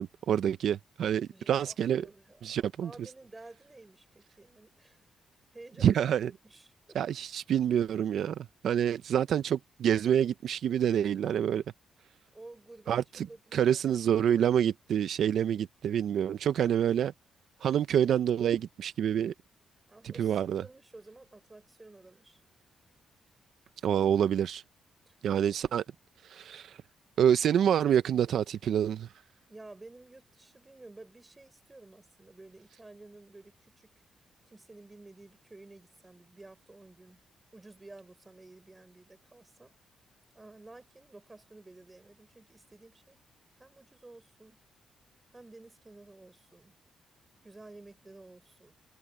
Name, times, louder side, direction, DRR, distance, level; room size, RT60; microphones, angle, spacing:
voice 1, 0.0-2.1 2.4-2.9 5.8-6.3 6.9-11.6 12.9-13.3 13.5-17.1 17.6-19.3 20.0-20.6 23.8-24.6 25.2-25.8 26.2-26.8 27.2-29.1, right 9 dB, 65° right, 0.5 m, -27 dB
voice 2, 1.3-5.1 5.5-6.1 6.4-7.0 12.3-13.0 13.3-14.0 19.9-22.4 25.1-25.2 29.5-33.9 34.5-37.2 37.5-39.8 40.3-43.2 43.5-44.6 45.3-46.8 47.4-48.7, right 2 dB, 15° right, 4.3 m, -52 dB
cardioid pair, 140°, 0 cm